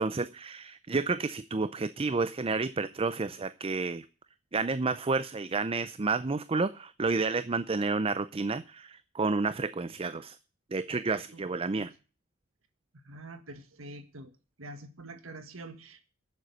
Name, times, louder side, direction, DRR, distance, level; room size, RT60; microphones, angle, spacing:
voice 1, 0.0-4.1 4.5-10.4 10.7-11.9, right 3 dB, 25° right, 13 dB, 0.5 m, -30 dB
voice 2, 12.9-14.3 14.6-16.0, right 2 dB, 70° right, 8 dB, 1.7 m, -46 dB
11.0 x 7.8 x 8.0 m, 0.35 s
head